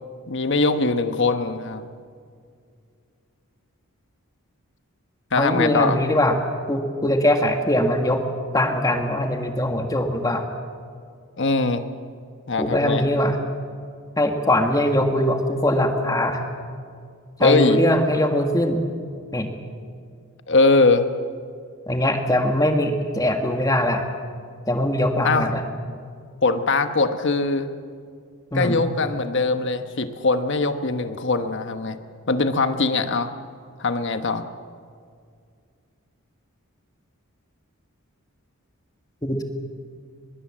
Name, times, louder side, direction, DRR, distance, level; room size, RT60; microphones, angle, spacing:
voice 1, 0.3-1.9 5.3-6.0 11.4-11.8 12.5-13.1 17.4-17.8 20.5-21.1 25.2-25.5 26.4-27.7 28.5-32.0 32.3-33.3 33.8-34.4, left 3 dB, 55° left, 8 dB, 1.2 m, -21 dB
voice 2, 5.4-6.4 6.7-8.2 8.5-10.5 12.6-13.4 14.2-16.4 17.4-18.8 19.3-19.5 21.9-24.0 24.7-25.6 28.5-28.8 39.2-39.4, left 1 dB, 15° left, 4 dB, 1.7 m, -21 dB
23.5 x 22.0 x 7.5 m, 2.2 s
head